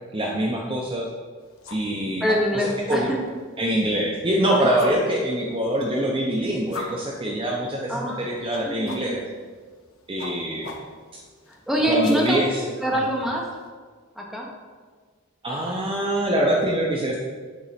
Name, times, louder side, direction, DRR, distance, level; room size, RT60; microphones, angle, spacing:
voice 1, 0.1-1.1 1.7-2.2 2.5-3.1 3.6-9.2 10.1-10.7 11.9-12.6 15.4-17.2, right 1 dB, 25° right, -1 dB, 0.7 m, -24 dB
sound 1, 1.4-13.7, left 3 dB, 75° left, 1.0 m, -42 dB
voice 2, 2.2-3.2 7.9-8.3 8.7-9.2 11.7-12.4 12.8-13.4 14.2-14.5, equal, ahead, -2 dB, 1.1 m, -24 dB
7.0 x 3.8 x 5.8 m, 1.5 s
head